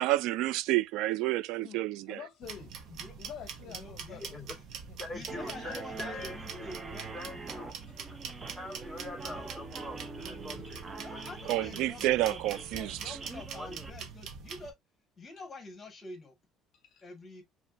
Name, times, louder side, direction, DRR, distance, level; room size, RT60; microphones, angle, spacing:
voice 1, 0.0-2.2 11.5-13.2, right 16 dB, 80° right, 0.3 m, -29 dB
voice 2, 1.6-2.7 3.2-4.4 5.2-5.3 7.9-8.3 10.6-10.7 16.7-17.0, left 9 dB, 60° left, 0.7 m, -48 dB
sound 1, 2.4-14.7, right 6 dB, 60° right, 0.9 m, -44 dB
voice 3, 3.7-4.3 5.1-7.1 7.3-7.5 9.2-9.5 11.0-14.7 15.2-16.4 17.0-17.4, left 3 dB, 25° left, 1.9 m, -47 dB
voice 4, 4.2-4.5 5.0-6.7 7.1-8.1 8.6-11.9 13.6-13.8, left 2 dB, ahead, 2.6 m, -44 dB
sound 2, 5.3-13.9, right 3 dB, 25° right, 0.7 m, -44 dB
5.2 x 2.9 x 2.5 m
cardioid pair, 120°, 0 cm